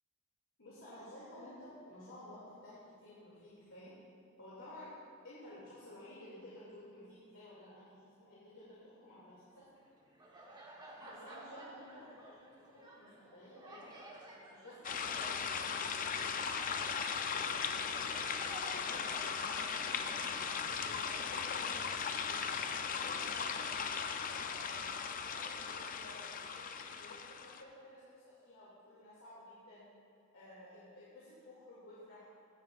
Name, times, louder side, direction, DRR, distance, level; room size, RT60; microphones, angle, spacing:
voice 1, 0.6-3.9 4.4-4.9 5.2-9.6 11.0-13.9 14.5-16.5 17.0-20.3 20.8-24.7 25.1-29.8 30.3-32.3, left 1 dB, 75° left, -9 dB, 2.6 m, -54 dB
sound 1, 9.5-20.6, right 1 dB, 20° right, 1.3 m, -54 dB
sound 2, 14.8-27.6, left 6 dB, 40° left, 0.5 m, -38 dB
16.0 x 9.6 x 2.5 m, 2.6 s
head